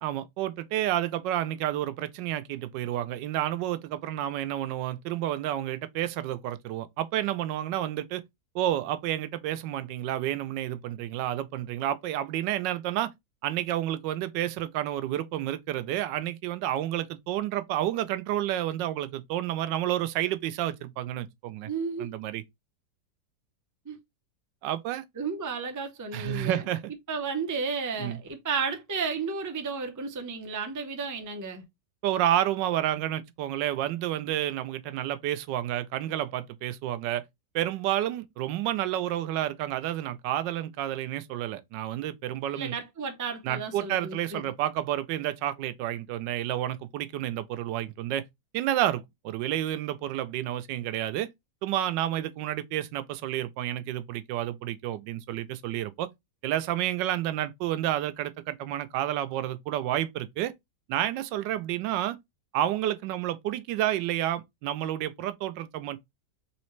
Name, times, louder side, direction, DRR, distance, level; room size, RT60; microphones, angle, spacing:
voice 1, 0.0-8.2 8.5-13.1 13.4-21.7 22.0-22.4 24.6-25.0 26.1-26.9 28.0-28.2 32.0-37.2 37.5-42.7 43.4-48.2 48.5-51.3 51.6-56.1 56.4-60.5 60.9-62.2 62.5-66.0, right 12 dB, 90° right, 1.2 m, -30 dB
voice 2, 21.7-22.1 23.9-24.0 25.2-26.6 27.1-31.6 42.5-44.4, right 5 dB, 25° right, 0.4 m, -33 dB
4.1 x 3.1 x 3.1 m
omnidirectional pair, 1.9 m